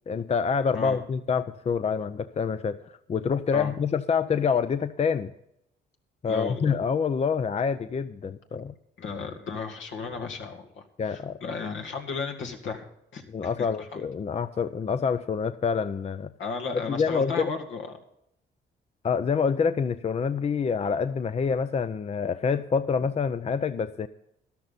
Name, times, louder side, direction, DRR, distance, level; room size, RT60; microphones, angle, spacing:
voice 1, 0.1-2.8 3.1-5.3 6.2-8.7 11.0-11.4 13.3-16.3 16.7-17.5 19.0-24.1, left 6 dB, 35° left, 12 dB, 0.6 m, -26 dB
voice 2, 6.3-6.7 9.0-12.8 13.1-13.5 13.8-14.0 16.4-18.0, left 5 dB, 75° left, 4 dB, 2.1 m, -34 dB
13.0 x 12.0 x 4.1 m, 0.78 s
cardioid pair, 90°, 20 cm